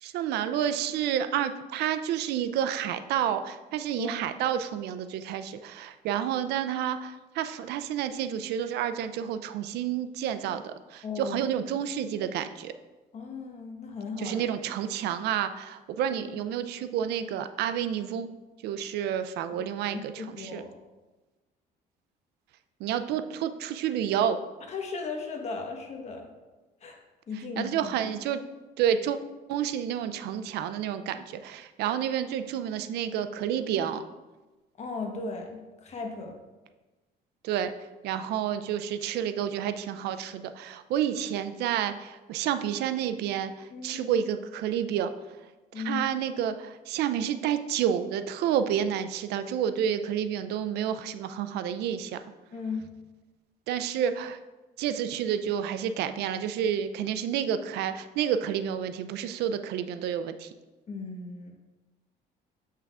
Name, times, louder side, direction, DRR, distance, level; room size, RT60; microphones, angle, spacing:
voice 1, 0.0-12.7 14.2-18.3 18.6-20.6 22.8-24.4 27.6-28.4 28.8-29.2 29.5-34.0 37.4-37.7 38.0-45.1 45.8-52.2 53.7-54.4 54.8-60.5, right 9 dB, 75° right, 10 dB, 0.4 m, -29 dB
voice 2, 11.0-11.5 13.1-14.4 16.3-16.4 19.5-19.6 20.2-20.7 24.7-26.3 26.8-27.0 27.3-28.1 34.8-36.4 43.7-44.0 45.7-46.0 52.5-52.9 60.9-61.5, left 4 dB, 40° left, 2 dB, 1.1 m, -36 dB
7.5 x 5.6 x 2.4 m, 1.2 s
cardioid pair, 110°, 17 cm